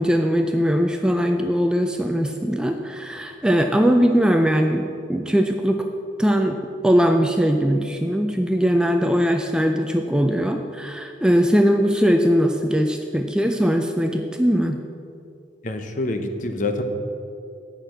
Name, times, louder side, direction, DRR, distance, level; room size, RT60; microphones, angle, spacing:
voice 1, 0.0-5.9 6.2-6.6 6.8-14.8, equal, 5° right, 4 dB, 0.4 m, -20 dB
voice 2, 15.6-16.8, left 2 dB, 45° left, 6 dB, 0.8 m, -26 dB
8.6 x 6.2 x 7.8 m, 2.6 s
head